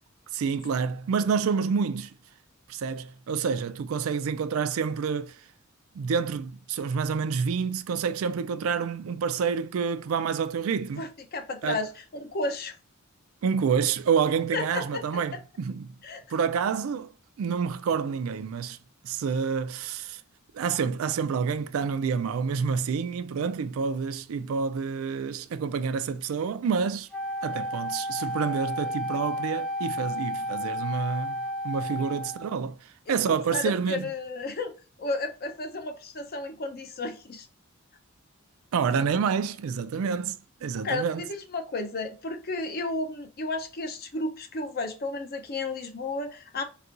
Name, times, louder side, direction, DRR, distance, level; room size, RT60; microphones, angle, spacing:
voice 1, 0.3-2.1 2.7-5.4 5.9-11.0 11.6-11.9 13.4-15.9 16.3-17.1 17.4-18.8 19.0-20.2 20.5-27.1 27.4-34.1 38.7-41.3, right 6 dB, 75° right, 0.3 m, -28 dB
voice 2, 11.0-12.8 14.5-15.0 16.0-16.2 33.1-37.5 40.8-46.6, left 3 dB, 45° left, 0.6 m, -33 dB
Wind instrument woodwind instrument, 27.1-32.6, equal, ahead, 0.4 m, -32 dB
4.1 x 2.3 x 2.5 m
head